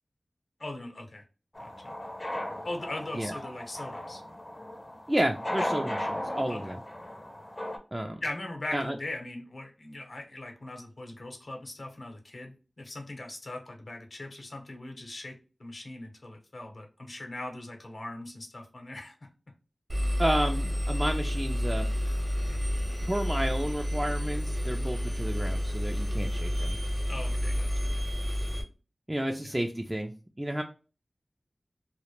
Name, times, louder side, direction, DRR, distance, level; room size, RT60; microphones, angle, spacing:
voice 1, 0.6-1.2 1.6-1.9 2.6-4.2 6.5-6.7 8.2-19.3 27.1-27.7 29.4-29.5, left 2 dB, 65° left, 3 dB, 0.8 m, -40 dB
sound 1, 1.5-7.8, left 1 dB, 30° left, 0.6 m, -36 dB
voice 2, 5.1-6.8 7.9-8.2 8.7-9.0 20.2-21.9 23.1-26.8 29.1-30.6, right 1 dB, 20° right, 2 dB, 0.3 m, -31 dB
Engine, 19.9-28.6, equal, 45° right, 0.7 m, -30 dB
2.1 x 2.1 x 3.0 m, 0.33 s
wide cardioid pair, 45°, 0 cm